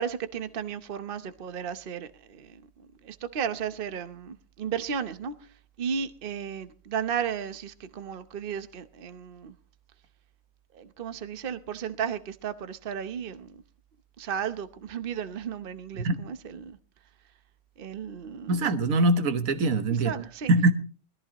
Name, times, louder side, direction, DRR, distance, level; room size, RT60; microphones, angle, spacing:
voice 1, 0.0-2.6 3.0-5.3 5.8-9.5 10.7-13.6 14.2-16.8 17.8-18.6 20.0-20.5, right 7 dB, 45° right, 1.0 m, -34 dB
voice 2, 18.5-20.1 20.5-20.7, right 2 dB, 70° right, 1.6 m, -23 dB
20.5 x 14.0 x 2.9 m
omnidirectional pair, 1.5 m